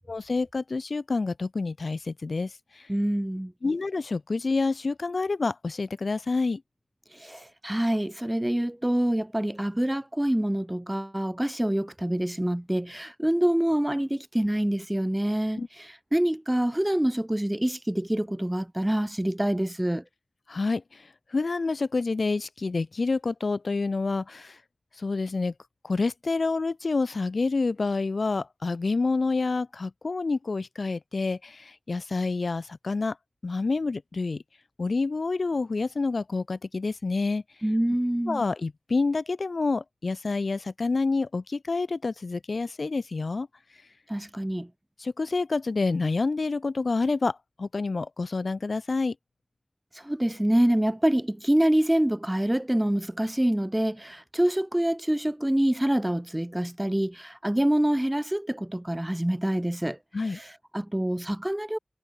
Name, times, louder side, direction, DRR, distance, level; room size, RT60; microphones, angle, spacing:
voice 1, 0.1-2.9 3.6-6.6 15.6-15.7 20.5-21.0 21.3-24.6 25.0-25.5 25.8-33.2 33.4-34.4 34.8-37.4 38.3-43.5 45.0-49.1 60.1-60.4, left 3 dB, 80° left, 0.8 m, -28 dB
voice 2, 2.9-3.5 7.2-20.0 37.6-38.4 44.1-44.7 50.0-60.0 60.3-61.8, right 1 dB, 15° right, 0.4 m, -26 dB
wide cardioid pair, 75°, 0 cm